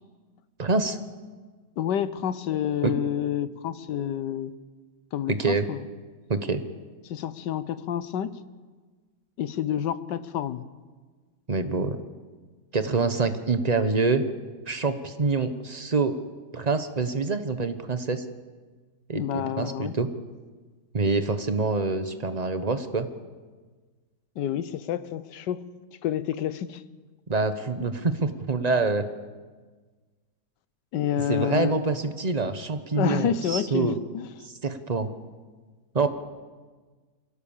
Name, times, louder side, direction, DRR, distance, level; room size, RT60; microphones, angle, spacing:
voice 1, 0.6-1.0 2.8-2.9 5.3-5.7 6.3-6.6 11.5-12.0 12.7-14.2 14.7-16.2 16.5-18.2 19.1-20.1 20.9-23.1 27.3-29.0 31.3-33.9 34.6-35.1 35.9-36.1, right 3 dB, 30° right, 9 dB, 1.0 m, -26 dB
voice 2, 1.8-4.5 5.1-5.8 7.0-8.4 9.4-10.6 19.1-20.0 24.4-25.6 26.0-26.8 30.9-31.8 32.9-34.3, left 9 dB, 90° left, 15 dB, 1.5 m, -29 dB
24.0 x 16.5 x 7.2 m, 1.4 s
omnidirectional pair, 1.8 m